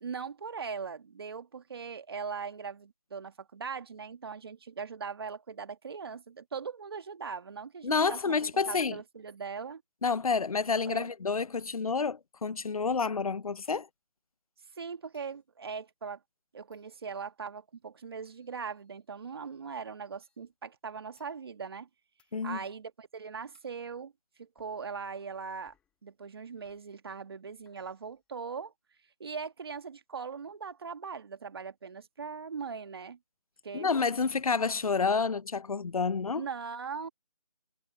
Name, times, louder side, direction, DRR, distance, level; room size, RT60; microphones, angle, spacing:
voice 1, 0.0-8.4 8.7-9.8 10.9-11.1 14.8-16.2 16.5-21.9 22.4-24.1 24.4-25.7 26.0-28.7 29.2-33.2 33.6-33.9 36.3-37.1, right 5 dB, 45° right, 1.8 m, -40 dB
voice 2, 7.8-9.0 10.0-13.9 22.3-22.6 33.7-36.5, left 5 dB, 80° left, 0.8 m, -29 dB
sound 1, 13.6-13.9 15.1-15.5 16.7-17.2 18.3-19.2 20.2-20.5 21.2-21.4 22.2-22.4 23.5-23.8 24.6-24.8 25.7-26.0 26.6-26.9 27.7-28.3, left 8 dB, 5° left, 7.7 m, -73 dB
figure-of-eight pair, 170°, 18 cm